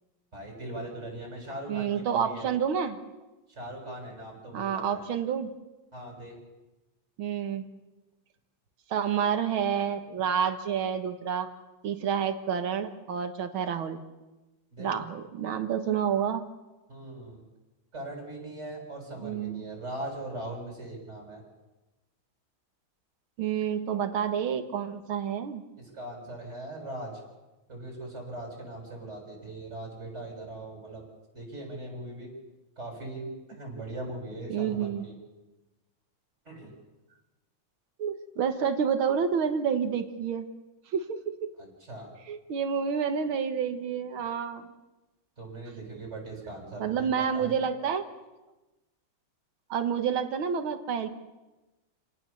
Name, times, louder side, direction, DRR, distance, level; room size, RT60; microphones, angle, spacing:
voice 1, 0.3-2.5 3.5-5.0 5.9-6.4 14.8-14.9 16.9-17.4 17.9-21.4 25.8-27.2 27.7-31.0 31.3-32.3 32.8-35.2 36.5-36.7 41.6-42.1 45.4-47.5, right 1 dB, 35° right, 0 dB, 7.3 m, -40 dB
voice 2, 1.7-3.0 4.5-5.5 7.2-7.7 8.9-11.5 11.8-14.0 14.8-16.4 19.2-19.6 23.4-25.6 34.5-35.0 38.0-40.5 40.9-41.5 42.3-44.7 46.8-48.1 49.7-51.1, right 7 dB, 85° right, 7 dB, 2.2 m, -29 dB
28.0 x 18.5 x 7.1 m, 1.1 s
omnidirectional pair, 2.2 m